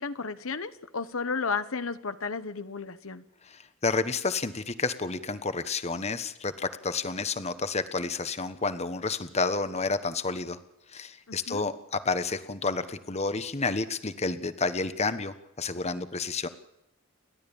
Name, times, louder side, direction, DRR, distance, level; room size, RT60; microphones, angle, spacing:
voice 1, 0.0-3.2 11.3-11.7, left 4 dB, 75° left, 12 dB, 1.1 m, -33 dB
voice 2, 3.5-10.6 10.9-16.5, left 4 dB, 30° left, 11 dB, 1.3 m, -30 dB
30.0 x 12.5 x 7.1 m, 0.82 s
head